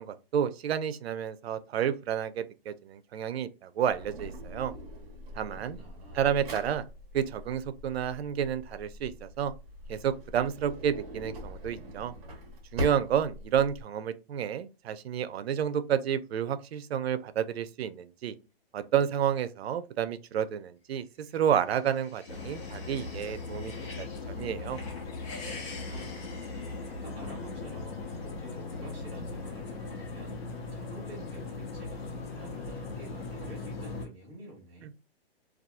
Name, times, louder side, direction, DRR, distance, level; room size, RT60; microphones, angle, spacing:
voice 1, 0.0-4.7 5.4-5.8 6.2-6.8 7.1-9.5 9.9-12.1 12.7-18.3 18.7-24.8, right 9 dB, 80° right, 0.5 m, -30 dB
Drawer open or close, 3.9-13.8, left 1 dB, 35° right, 1.0 m, -42 dB
voice 2, 5.5-6.3 25.6-26.4 26.9-30.4 30.7-34.9, right 1 dB, 5° right, 0.3 m, -49 dB
sound 1, 21.5-24.2 24.6-27.4, left 3 dB, 30° left, 0.7 m, -47 dB
sound 2, 22.3-34.0, left 3 dB, 75° left, 1.0 m, -39 dB
2.7 x 2.3 x 2.2 m
hypercardioid pair, 160°, 31 cm